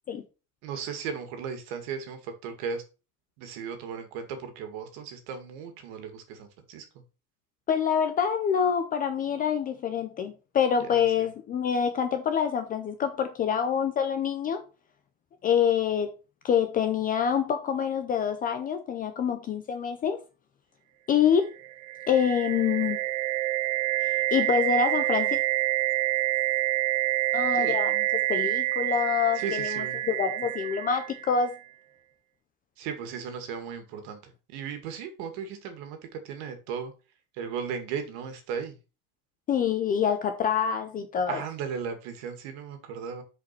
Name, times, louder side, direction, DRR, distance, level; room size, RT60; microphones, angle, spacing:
voice 1, 0.6-2.8 3.4-6.9 10.8-11.3 27.5-27.8 29.3-30.0 32.8-34.2 34.5-36.9 37.3-38.7 41.3-43.2, right 6 dB, 55° right, 2.2 m, -36 dB
voice 2, 7.7-14.6 15.4-16.1 16.4-20.2 21.1-21.5 22.1-23.0 24.3-25.4 27.3-31.5 39.5-41.4, left 7 dB, 20° left, 0.6 m, -26 dB
sound 1, 21.6-31.5, right 16 dB, 85° right, 0.8 m, -27 dB
7.1 x 5.1 x 5.9 m
cardioid pair, 170°, 42 cm